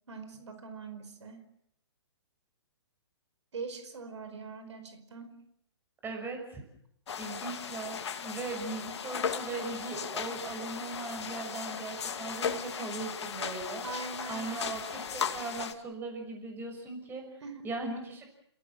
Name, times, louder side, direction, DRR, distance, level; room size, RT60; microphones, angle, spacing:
voice 1, 0.1-1.5 3.5-5.4 13.8-14.7 17.4-17.6, right 4 dB, 75° right, 8 dB, 4.9 m, -42 dB
voice 2, 6.0-6.6 7.2-13.9 14.2-17.3 17.6-18.3, right 3 dB, 15° right, 3 dB, 6.1 m, -39 dB
sound 1, 7.1-15.7, left 7 dB, 65° left, 2.7 m, -37 dB
29.5 x 17.5 x 7.6 m, 0.72 s
hypercardioid pair, 140°, 15 cm